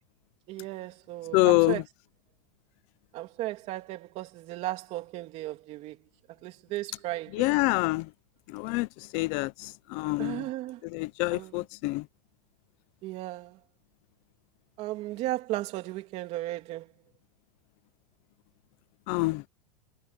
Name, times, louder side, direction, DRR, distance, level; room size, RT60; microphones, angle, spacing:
voice 1, 0.5-1.8 3.1-6.0 6.3-7.5 10.2-10.8 11.3-11.5 13.0-13.6 14.8-16.9, right 16 dB, 30° right, 3.4 m, -35 dB
voice 2, 1.3-1.8 7.3-8.1 8.5-10.4 10.8-12.1 19.1-19.4, left 23 dB, 35° left, 1.0 m, -26 dB
supercardioid pair, 165°, 21 cm